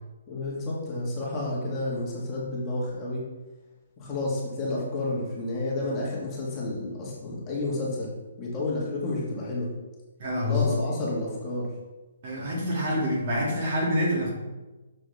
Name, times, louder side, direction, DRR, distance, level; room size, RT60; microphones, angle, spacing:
voice 1, 0.3-3.2 4.0-8.1 8.4-9.7 10.4-11.7, left 2 dB, 20° left, -5 dB, 1.7 m, -30 dB
voice 2, 10.2-10.8 12.2-14.3, left 1 dB, 40° right, -4 dB, 2.4 m, -26 dB
6.6 x 6.3 x 3.5 m, 1.1 s
hypercardioid pair, 160°, 0 cm